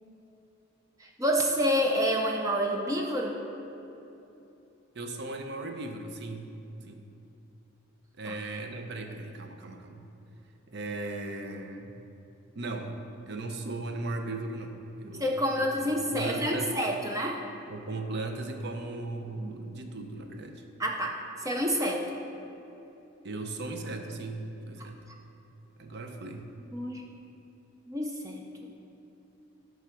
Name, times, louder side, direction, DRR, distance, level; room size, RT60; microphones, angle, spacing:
voice 1, 1.0-3.4 8.2-8.3 15.2-17.4 20.8-21.1 21.4-22.2 24.8-24.9 26.7-27.1 27.9-28.4, equal, 15° right, 0 dB, 0.4 m, -28 dB
voice 2, 4.9-6.5 6.9-7.1 8.2-10.1 10.7-11.9 12.5-13.0 13.3-16.7 17.7-20.6 23.2-25.0 25.8-26.5, right 2 dB, 55° right, 5 dB, 0.6 m, -37 dB
9.1 x 3.6 x 5.8 m, 2.9 s
head